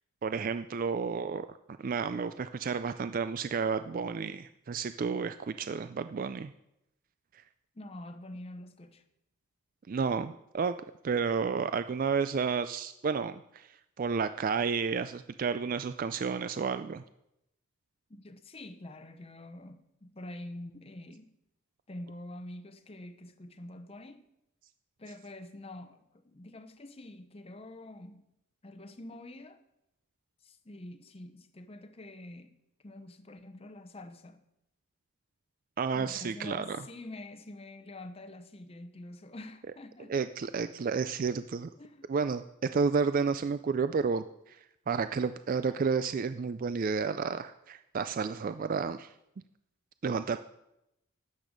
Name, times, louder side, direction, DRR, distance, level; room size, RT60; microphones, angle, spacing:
voice 1, 0.2-6.5 9.9-10.8 11.0-17.0 35.8-36.8 40.1-41.7 42.1-44.6 44.9-49.1 50.0-50.4, right 5 dB, 40° right, 0.3 m, -31 dB
voice 2, 7.7-9.0 18.1-21.3 21.9-24.3 25.0-28.3 28.6-29.6 30.4-34.4 35.9-40.2 41.8-42.1, left 1 dB, 25° left, 0.7 m, -46 dB
12.5 x 8.5 x 5.1 m
head